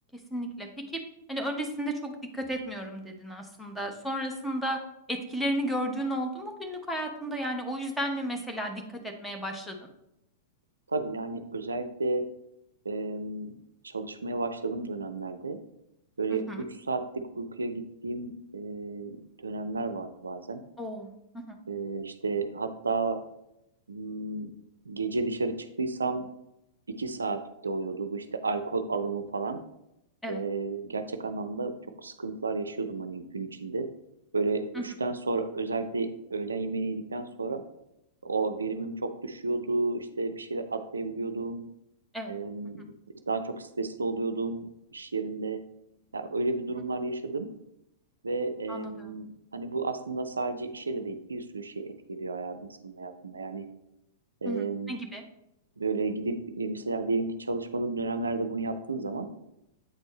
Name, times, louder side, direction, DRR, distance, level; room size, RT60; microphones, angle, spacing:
voice 1, 0.3-1.0 1.3-4.8 5.1-9.9 16.3-16.7 20.8-21.1 21.5-21.6 30.2-30.4 34.7-34.8 42.1-42.3 42.8-42.9 48.7-49.2 54.4-55.2, equal, 5° left, 3 dB, 0.9 m, -33 dB
voice 2, 10.9-12.2 12.8-13.5 13.8-15.6 16.2-20.6 21.7-23.2 23.9-24.5 24.9-26.3 27.0-29.6 30.3-33.9 34.3-37.6 38.2-41.6 42.3-42.8 43.3-45.6 46.1-47.5 48.2-53.7 54.4-55.0 55.8-59.3, right 3 dB, 75° right, 9 dB, 0.4 m, -32 dB
8.0 x 4.3 x 3.0 m, 0.85 s
figure-of-eight pair, 100°, 0 cm